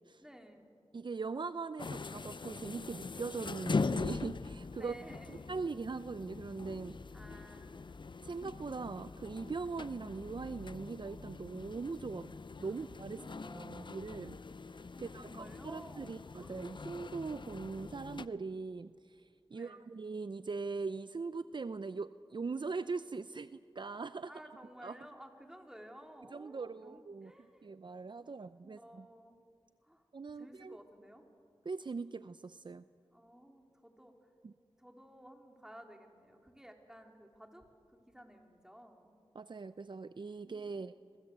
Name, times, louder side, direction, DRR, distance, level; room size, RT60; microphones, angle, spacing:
voice 1, 0.2-0.7 4.7-5.5 7.1-8.0 12.6-13.8 14.9-16.8 19.5-19.9 24.2-27.7 28.6-29.4 29.8-30.1 30.4-31.3 33.1-34.3 34.8-39.1, equal, 5° right, 2 dB, 4.0 m, -55 dB
voice 2, 0.9-4.9 5.5-7.0 8.2-12.3 12.6-13.2 13.5-14.4 15.0-24.3 24.8-24.9 26.3-27.3 27.6-29.1 30.1-30.8 31.7-32.8 34.4-34.5 39.3-40.9, right 4 dB, 50° right, 13 dB, 0.6 m, -41 dB
sound 1, 1.8-18.3, left 4 dB, 50° left, 0.7 m, -42 dB
28.5 x 24.0 x 8.1 m, 2.4 s
cardioid pair, 45°, 10 cm